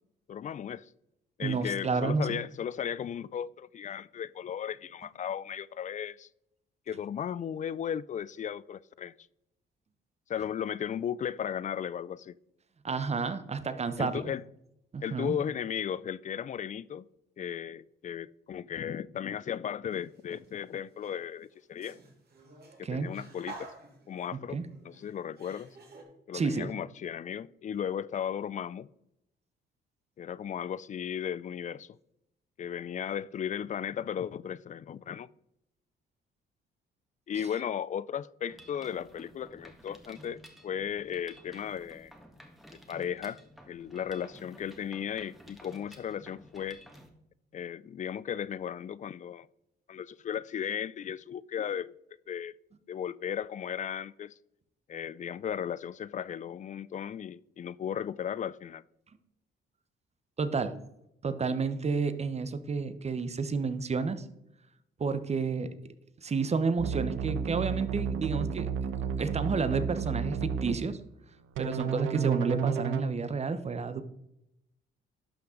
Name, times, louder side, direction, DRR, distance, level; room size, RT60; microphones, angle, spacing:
voice 1, 0.3-0.9 1.4-6.3 6.9-9.1 10.3-12.3 14.0-14.4 15.0-17.0 17.4-22.0 22.9-23.7 24.1-24.6 24.8-25.8 26.3-28.9 30.2-32.0 32.6-35.3 37.3-42.1 42.7-43.4 43.7-46.8 47.5-49.5 49.9-51.9 52.3-52.5 52.9-54.3 54.9-58.8, left 8 dB, 40° left, 0.4 m, -36 dB
voice 2, 1.4-2.4 12.8-14.3 14.9-15.4 22.8-23.1 24.5-24.7 26.3-26.7 60.4-60.8 61.2-64.2 65.0-65.7 66.2-68.7 69.2-71.0 71.6-74.0, right 4 dB, 35° right, 0.9 m, -30 dB
sound 1, 19.9-20.5 20.9-26.0, right 3 dB, 55° right, 3.1 m, -50 dB
Mechanisms, 38.5-47.1, equal, ahead, 1.7 m, -53 dB
sound 2, 66.8-70.8 71.6-73.0, right 7 dB, 85° right, 0.8 m, -32 dB
11.5 x 5.9 x 3.8 m
cardioid pair, 90°, 20 cm